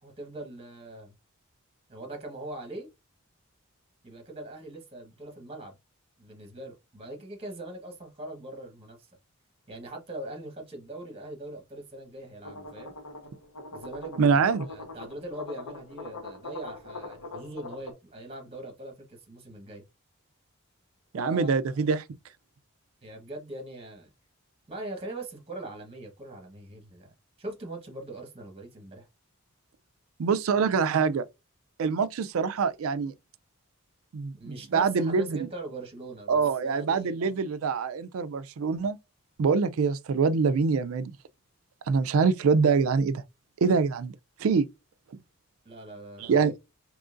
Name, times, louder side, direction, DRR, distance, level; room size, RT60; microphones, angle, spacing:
voice 1, 0.0-1.1 1.9-2.9 4.0-5.8 6.2-9.1 9.7-12.9 13.7-19.8 21.1-21.6 23.0-24.1 24.7-27.1 27.4-29.1 34.3-37.2 45.6-46.5, right 2 dB, 25° right, 1.0 m, -41 dB
sound 1, 12.4-17.9, left 3 dB, 90° left, 0.9 m, -42 dB
voice 2, 14.2-14.6 21.1-22.0 30.2-31.2 31.8-33.1 34.1-35.4 36.3-39.0 39.4-41.1 41.9-43.2 43.6-44.1 44.4-44.7 46.2-46.5, right 5 dB, 70° right, 0.4 m, -24 dB
3.7 x 3.0 x 2.4 m
head